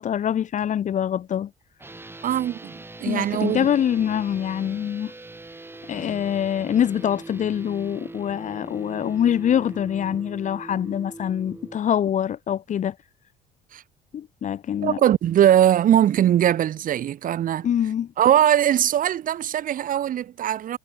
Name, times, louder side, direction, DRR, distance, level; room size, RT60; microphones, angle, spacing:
voice 1, 0.0-1.5 3.0-5.1 5.9-12.9 14.1-15.0 17.6-18.1, left 9 dB, 45° left, 1.1 m, -24 dB
sound 1, 1.8-11.8, right 2 dB, 15° right, 4.4 m, -41 dB
voice 2, 2.2-3.7 13.7-13.8 14.8-17.7 18.2-20.8, right 11 dB, 55° right, 1.2 m, -21 dB
cardioid pair, 110°, 17 cm